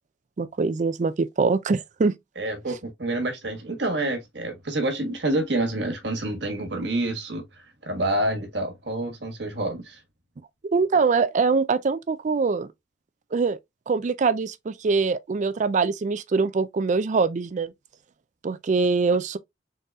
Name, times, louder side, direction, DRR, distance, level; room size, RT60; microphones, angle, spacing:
voice 1, 0.4-2.1 10.7-12.7 13.3-13.6 13.9-17.7 18.4-19.4, right 4 dB, 40° right, 0.4 m, -23 dB
voice 2, 2.4-7.5 7.8-10.0, right 1 dB, 65° right, 1.5 m, -28 dB
4.0 x 3.8 x 2.3 m
head